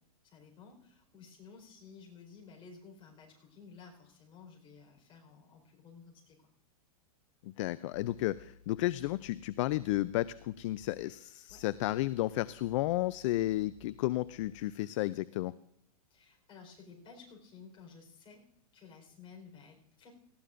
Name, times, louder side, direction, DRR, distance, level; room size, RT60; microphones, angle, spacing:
voice 1, 0.2-6.4 11.5-11.6 16.1-18.4 18.7-20.1, left 5 dB, 25° left, 1 dB, 4.3 m, -54 dB
voice 2, 7.4-15.5, left 16 dB, 50° left, 17 dB, 0.4 m, -32 dB
sound 1, 7.9-15.1, left 8 dB, 75° left, 4.8 m, -59 dB
18.5 x 15.5 x 2.5 m, 0.74 s
hypercardioid pair, 140°, 20 cm